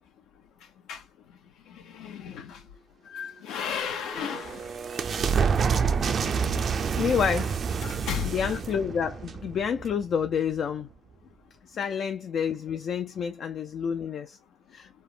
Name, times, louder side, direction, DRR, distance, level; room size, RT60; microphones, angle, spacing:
voice 1, 1.7-2.6 3.1-4.7 7.8-8.5 11.8-11.9, left 7 dB, 85° left, 0.7 m, -34 dB
sound 1, 3.8-10.3, right 6 dB, 55° right, 0.4 m, -28 dB
voice 2, 6.9-7.6 8.2-10.9 11.7-14.4 14.7-14.9, left 7 dB, 60° left, 0.3 m, -29 dB
3.3 x 2.0 x 2.4 m
cardioid pair, 90°, 0 cm